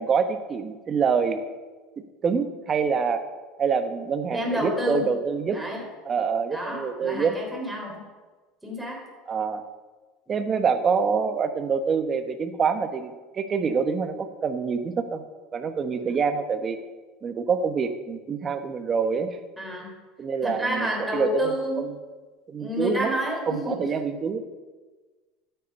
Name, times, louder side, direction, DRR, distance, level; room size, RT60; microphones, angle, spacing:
voice 1, 0.0-1.4 2.2-3.2 3.6-5.6 6.0-7.3 9.3-9.6 10.3-15.2 15.5-16.8 17.2-19.3 20.2-21.5 21.8-21.9 22.5-23.1 23.5-24.4, right 5 dB, 30° right, 8 dB, 1.2 m, -26 dB
voice 2, 4.3-5.1 5.5-5.9 6.5-8.1 8.6-9.1 19.6-19.9 20.4-21.9 22.6-23.8, equal, 5° right, -2 dB, 3.9 m, -29 dB
12.0 x 8.4 x 5.3 m, 1.3 s
supercardioid pair, 110°, 0 cm